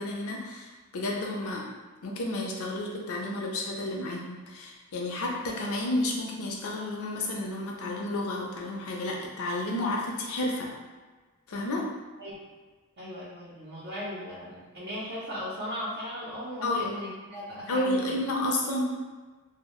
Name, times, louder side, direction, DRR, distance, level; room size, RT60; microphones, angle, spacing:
voice 1, 0.0-1.7 2.0-10.7 11.5-11.9 16.6-17.0 17.7-18.8, left 1 dB, 70° left, -1 dB, 0.5 m, -31 dB
voice 2, 13.0-18.1, equal, 45° right, -9 dB, 0.5 m, -37 dB
2.0 x 2.0 x 2.9 m, 1.3 s
head